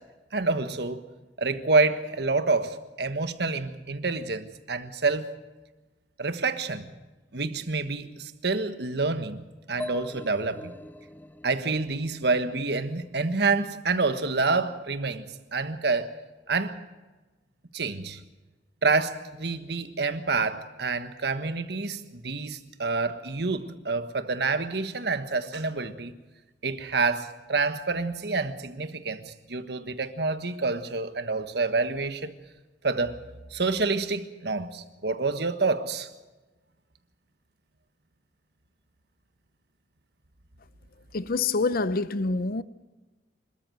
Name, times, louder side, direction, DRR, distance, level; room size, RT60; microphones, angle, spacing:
voice 1, 0.3-1.0 1.4-5.3 6.2-6.9 7.3-9.4 9.7-10.7 11.4-15.3 15.5-16.1 16.5-16.8 17.7-18.2 18.8-26.1 26.6-32.3 32.8-33.2 33.5-36.1, right 3 dB, 65° right, 1.5 m, -28 dB
sound 1, 9.8-13.5, left 1 dB, 10° left, 0.6 m, -42 dB
voice 2, 41.1-42.6, left 3 dB, 55° left, 0.7 m, -26 dB
26.0 x 14.0 x 7.8 m
head